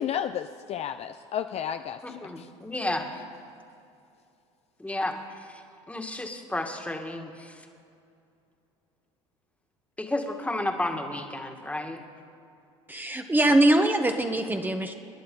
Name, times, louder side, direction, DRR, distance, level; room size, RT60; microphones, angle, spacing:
voice 1, 0.0-2.5, left 9 dB, 40° left, 9 dB, 0.5 m, -32 dB
voice 2, 2.0-3.2 4.8-7.6 10.0-12.0, left 1 dB, 10° left, 4 dB, 1.9 m, -32 dB
voice 3, 12.9-14.9, right 1 dB, 10° right, 5 dB, 1.1 m, -22 dB
28.5 x 10.5 x 3.9 m, 2.5 s
hypercardioid pair, 70°, 16 cm